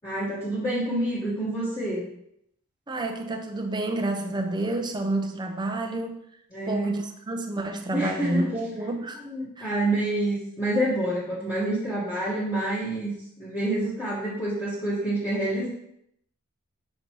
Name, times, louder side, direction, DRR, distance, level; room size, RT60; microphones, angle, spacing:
voice 1, 0.0-2.1 6.5-6.9 7.9-8.5 9.2-13.1 13.4-15.7, right 1 dB, 15° left, -11 dB, 1.5 m, -27 dB
voice 2, 2.9-6.2 6.7-9.2 9.6-9.7, right 2 dB, 20° right, 4 dB, 0.6 m, -29 dB
6.7 x 5.3 x 3.0 m, 0.76 s
head